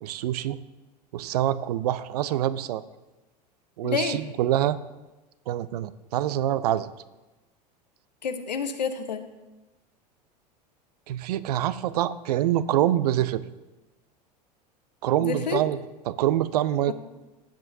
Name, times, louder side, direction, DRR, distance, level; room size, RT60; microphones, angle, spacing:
voice 1, 0.0-0.6 1.1-2.8 3.8-4.8 5.5-6.9 11.1-13.4 15.0-15.8 16.1-16.9, right 12 dB, 70° right, 16 dB, 0.6 m, -25 dB
voice 2, 3.8-4.2 8.2-9.2 15.2-15.6 16.9-17.0, left 6 dB, 85° left, 7 dB, 1.0 m, -29 dB
16.0 x 7.7 x 2.7 m, 1.1 s
hypercardioid pair, 85°, 21 cm